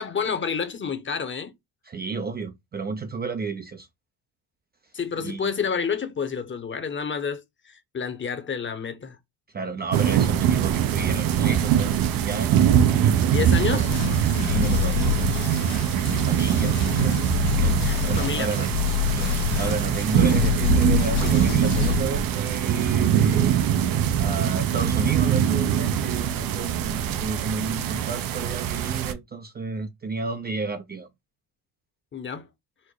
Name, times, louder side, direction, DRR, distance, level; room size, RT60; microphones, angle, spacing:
voice 1, 0.0-1.5 4.9-9.2 13.3-13.9 17.8-18.5 23.9-24.0 32.1-32.5, left 6 dB, 30° left, 0.9 m, -29 dB
voice 2, 1.9-3.9 5.2-5.5 9.5-12.6 13.0-13.9 14.3-15.3 16.1-17.2 17.6-18.7 19.1-23.6 24.2-31.1, right 4 dB, 25° right, 0.5 m, -32 dB
sound 1, 9.9-29.1, right 9 dB, 60° right, 0.7 m, -23 dB
sound 2, 13.9-22.0, left 11 dB, 80° left, 1.2 m, -27 dB
4.4 x 2.1 x 4.5 m
cardioid pair, 90°, 38 cm